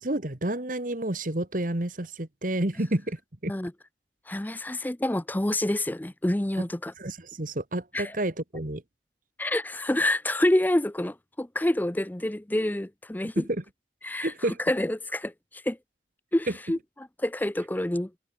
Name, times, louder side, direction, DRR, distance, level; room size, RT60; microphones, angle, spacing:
voice 1, 0.0-3.2 3.4-3.5 7.0-8.8 13.4-13.5 14.2-14.6, right 1 dB, 45° right, 1.8 m, -30 dB
voice 2, 4.3-6.9 7.9-8.2 9.4-13.5 14.0-15.8 16.3-18.1, left 1 dB, 10° left, 0.5 m, -28 dB
head